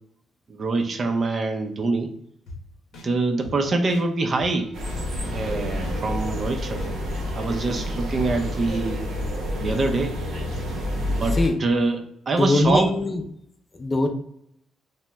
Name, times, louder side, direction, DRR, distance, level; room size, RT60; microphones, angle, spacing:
voice 1, 0.5-2.1 3.0-4.7 5.2-6.9 7.4-9.0 9.6-10.1 11.1-12.9, right 3 dB, 45° right, 5 dB, 0.4 m, -25 dB
sound 1, 2.5-2.6 2.9-3.1 3.4-3.5 3.9-4.0 4.4-4.5 4.9-5.0 5.3-5.5 5.8-5.9 6.3-6.4 6.8-6.9 7.3-7.4 7.7-7.9 8.2-8.3 8.7-8.8 9.2-9.3 9.7-9.8, left 3 dB, 80° left, 0.8 m, -39 dB
sound 2, 4.7-11.5, left 1 dB, 80° right, 0.8 m, -28 dB
voice 2, 12.4-13.2 13.8-14.1, left 2 dB, 30° left, 5 dB, 0.5 m, -21 dB
2.8 x 2.1 x 3.3 m, 0.71 s
cardioid pair, 90°, 0 cm